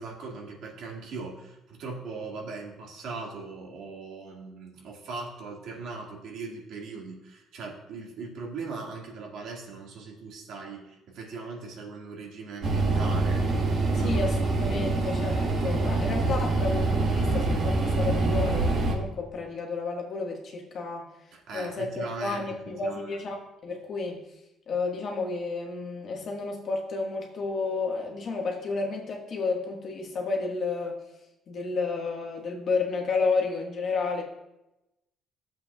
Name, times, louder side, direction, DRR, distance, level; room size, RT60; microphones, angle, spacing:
voice 1, 0.0-13.5 14.0-14.3 21.3-23.2, right 4 dB, 70° right, -1 dB, 1.9 m, -39 dB
sound 1, 12.6-18.9, right 3 dB, 40° right, 1.3 m, -25 dB
voice 2, 13.9-21.0 21.5-24.2 24.7-30.9 31.5-34.2, left 4 dB, 45° left, 0 dB, 1.6 m, -31 dB
14.5 x 7.5 x 2.3 m, 0.93 s
cardioid pair, 145°, 0 cm